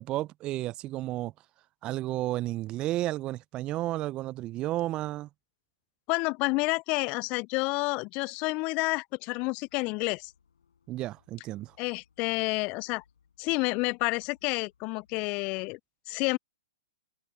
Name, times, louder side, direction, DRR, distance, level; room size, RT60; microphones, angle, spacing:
voice 1, 0.0-1.3 1.8-5.3 10.9-11.8, right 15 dB, 30° right, 0.5 m, -32 dB
voice 2, 6.1-10.3 11.8-13.0 13.4-15.8 16.1-16.4, left 27 dB, 35° left, 0.3 m, -29 dB
sound 1, 9.6-15.7, left 7 dB, 75° left, 7.9 m, -68 dB
open air
hypercardioid pair, 120°, 3 cm